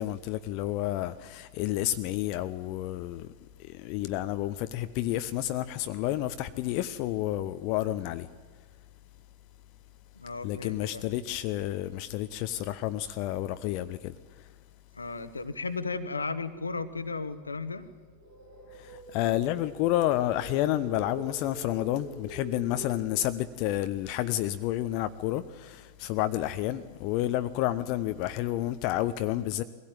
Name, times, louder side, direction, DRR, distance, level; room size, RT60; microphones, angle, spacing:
voice 1, 0.0-3.3 3.6-8.3 10.4-14.5 18.7-29.6, left 14 dB, 45° left, 0.7 m, -30 dB
voice 2, 10.2-11.0 14.9-17.9, left 4 dB, 80° left, 1.2 m, -35 dB
sound 1, 18.1-23.1, right 1 dB, 80° right, 5.7 m, -45 dB
22.0 x 16.5 x 9.0 m
figure-of-eight pair, 90°, 0 cm